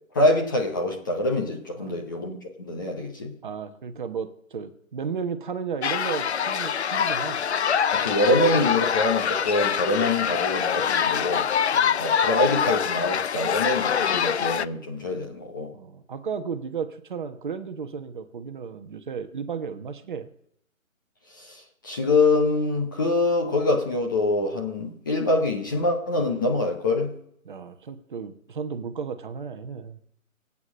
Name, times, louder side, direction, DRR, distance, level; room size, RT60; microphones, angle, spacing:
voice 1, 0.1-3.3 7.9-11.5 12.0-15.7 21.4-27.1, left 2 dB, 15° left, 1 dB, 0.8 m, -25 dB
voice 2, 3.4-7.4 10.1-10.2 11.7-12.0 15.7-20.3 27.4-30.0, right 6 dB, 35° right, 9 dB, 1.1 m, -34 dB
sound 1, 5.8-14.7, left 7 dB, 55° left, 0.6 m, -24 dB
25.0 x 8.6 x 6.3 m, 0.71 s
hypercardioid pair, 155°, 41 cm